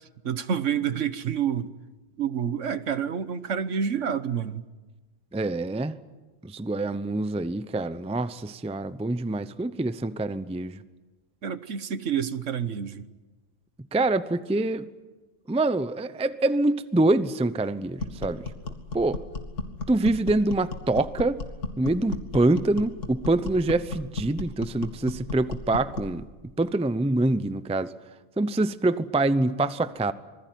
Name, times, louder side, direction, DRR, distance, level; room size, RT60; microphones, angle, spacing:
voice 1, 0.2-1.7 2.2-4.6 11.4-13.1, right 8 dB, 65° right, 1.4 m, -28 dB
voice 2, 5.3-6.0 6.4-10.8 13.9-14.9 15.5-18.4 18.9-19.2 19.9-21.4 21.8-26.2 26.6-27.9 28.4-30.1, right 2 dB, 5° right, 0.5 m, -25 dB
sound 1, 18.0-26.2, left 3 dB, 65° left, 2.5 m, -35 dB
26.5 x 21.0 x 9.3 m
omnidirectional pair, 1.4 m